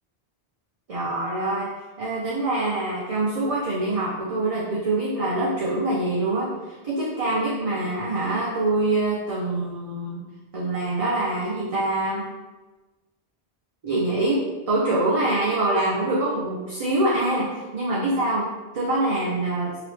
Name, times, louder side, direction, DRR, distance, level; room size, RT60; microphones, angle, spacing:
voice 1, 0.9-1.7 2.0-10.2 10.5-12.2 13.8-18.5 18.7-19.7, right 2 dB, 45° right, -6 dB, 0.5 m, -25 dB
2.9 x 2.9 x 3.2 m, 1.2 s
omnidirectional pair, 1.0 m